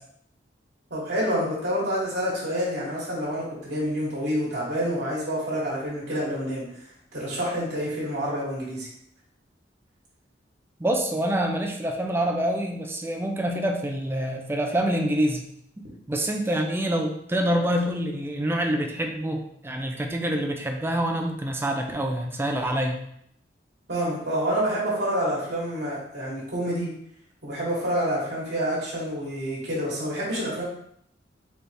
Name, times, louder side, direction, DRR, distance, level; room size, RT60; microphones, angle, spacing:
voice 1, 0.9-8.9 23.9-26.9 27.4-30.6, equal, 65° right, -6 dB, 1.4 m, -28 dB
voice 2, 10.8-15.4 15.8-23.0, right 1 dB, 15° right, 2 dB, 0.4 m, -26 dB
4.1 x 3.4 x 3.4 m, 0.71 s
head